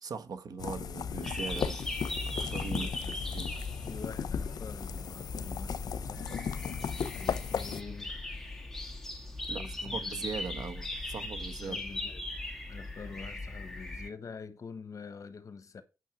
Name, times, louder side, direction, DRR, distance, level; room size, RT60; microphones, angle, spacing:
voice 1, 0.0-1.8 2.2-2.9 3.3-3.5 9.5-11.8, right 5 dB, 80° right, 1.4 m, -40 dB
sound 1, 0.6-7.8, left 7 dB, 85° left, 0.7 m, -36 dB
sound 2, 1.2-14.1, left 2 dB, 5° left, 2.3 m, -39 dB
voice 2, 2.7-3.2 3.8-6.5 7.1-8.3 9.5-10.2 11.6-12.3 12.7-15.8, left 5 dB, 55° left, 1.4 m, -46 dB
9.2 x 6.5 x 6.1 m
wide cardioid pair, 100°, 7 cm